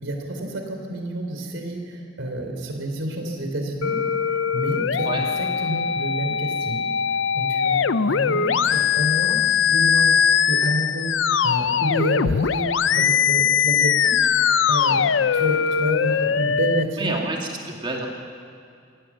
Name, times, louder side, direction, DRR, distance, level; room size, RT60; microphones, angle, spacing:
voice 1, 0.0-4.0 4.5-6.9 7.3-7.8 8.1-9.4 9.7-10.2 10.5-11.1 11.4-12.7 12.9-14.2 14.7-15.0 15.3-17.3, right 1 dB, 85° right, 3 dB, 3.6 m, -29 dB
sound 1, 3.8-16.8, left 7 dB, 70° left, 0.6 m, -21 dB
voice 2, 17.0-18.1, right 2 dB, 25° right, 0 dB, 2.3 m, -29 dB
26.5 x 17.5 x 7.4 m, 2.3 s
head